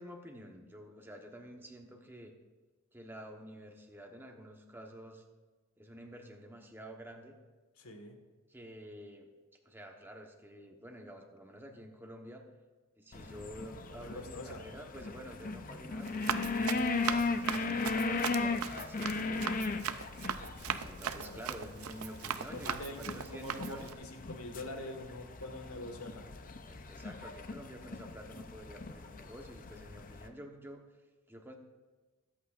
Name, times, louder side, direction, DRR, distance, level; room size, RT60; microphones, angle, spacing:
voice 1, 0.0-2.3 2.9-5.2 5.8-7.4 8.5-9.3 9.6-12.5 13.0-16.7 17.1-19.6 20.7-24.0 26.6-30.8 31.3-31.6, equal, 10° right, 2 dB, 1.1 m, -49 dB
voice 2, 7.8-8.1 13.9-14.6 20.6-20.8 21.1-21.4 22.5-26.3, left 1 dB, 75° left, 4 dB, 1.6 m, -44 dB
sound 1, 13.1-30.3, left 3 dB, 40° left, 0.6 m, -38 dB
Run, 16.0-23.9, right 8 dB, 70° right, 0.5 m, -39 dB
21.5 x 8.3 x 2.5 m, 1.3 s
head